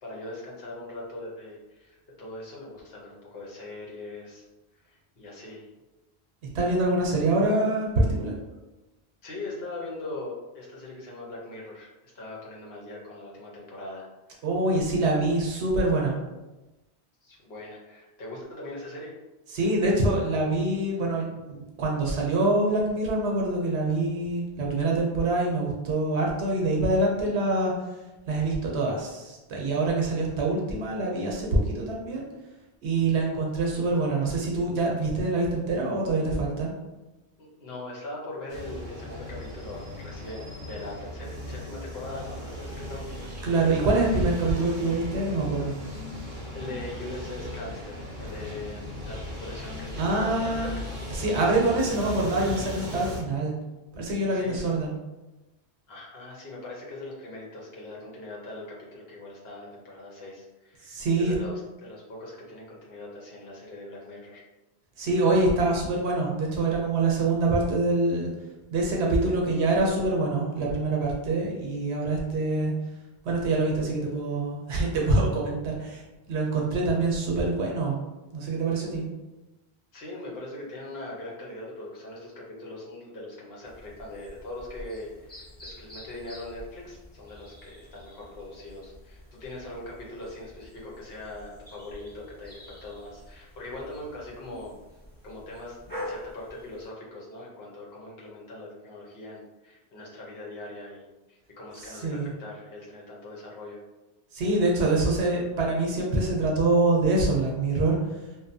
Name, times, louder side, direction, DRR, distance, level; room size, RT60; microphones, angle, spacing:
voice 1, 0.0-4.4 4.8-5.7 9.2-14.0 14.3-14.4 17.2-19.1 37.4-43.3 46.5-50.7 54.3-54.7 55.9-64.4 79.9-94.7 95.2-103.8, left 2 dB, 65° left, -4 dB, 1.0 m, -41 dB
voice 2, 6.5-8.3 14.4-16.2 19.5-27.7 28.3-32.3 32.8-36.7 43.4-45.7 50.0-50.7 51.1-53.6 53.9-54.9 60.8-61.3 65.0-68.3 68.7-72.7 73.2-76.0 76.3-78.0 78.3-79.0 102.0-102.3 104.3-108.2, right 2 dB, 80° right, -2 dB, 0.9 m, -25 dB
sound 1, 38.5-53.2, left 1 dB, 50° right, 0.7 m, -37 dB
sound 2, 83.6-96.9, left 1 dB, 10° left, 0.6 m, -46 dB
2.7 x 2.0 x 2.6 m, 1.1 s
omnidirectional pair, 1.1 m